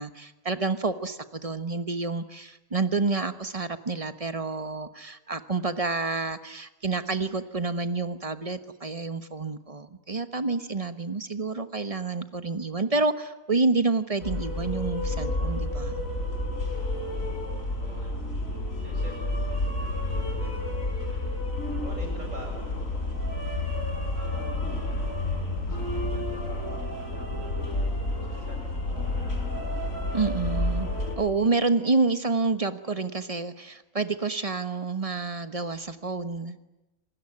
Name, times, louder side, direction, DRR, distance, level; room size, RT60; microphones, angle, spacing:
voice 1, 0.0-16.0 30.1-30.9 31.2-36.6, right 3 dB, 30° right, 11 dB, 1.2 m, -28 dB
sound 1, 14.2-31.2, left 1 dB, 80° left, 5.2 m, -30 dB
voice 2, 17.7-18.4 18.8-21.5 21.8-23.4 23.8-24.8 25.6-29.4, right 1 dB, 70° right, 2 dB, 8.3 m, -47 dB
27.0 x 19.5 x 9.8 m, 0.98 s
omnidirectional pair, 1.4 m